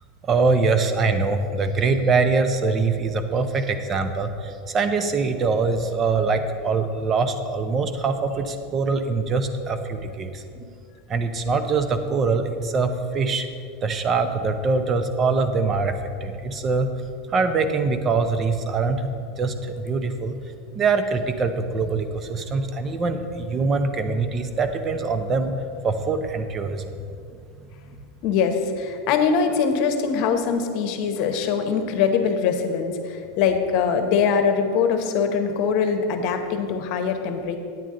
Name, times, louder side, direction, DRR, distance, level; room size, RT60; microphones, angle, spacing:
voice 1, 0.2-10.4 11.1-13.5 13.8-16.9 17.3-19.1 19.4-20.4 20.7-25.5 25.8-26.9, right 4 dB, 30° right, 8 dB, 0.7 m, -23 dB
voice 2, 28.2-37.6, left 6 dB, 55° left, 6 dB, 1.0 m, -22 dB
9.2 x 9.0 x 3.8 m, 2.4 s
supercardioid pair, 130°, 0 cm